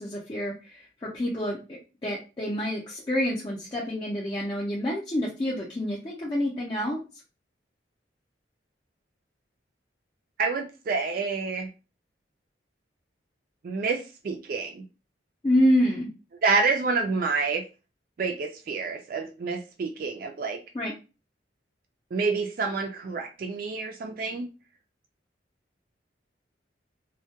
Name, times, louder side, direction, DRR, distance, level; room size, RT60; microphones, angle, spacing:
voice 1, 0.0-7.0 15.4-16.1 20.7-20.9, equal, 25° left, -5 dB, 0.5 m, -27 dB
voice 2, 10.4-11.7 13.6-14.9 16.4-17.6 18.2-20.6 22.1-24.5, right 4 dB, 50° right, 5 dB, 0.3 m, -28 dB
2.2 x 2.1 x 2.8 m, 0.31 s
head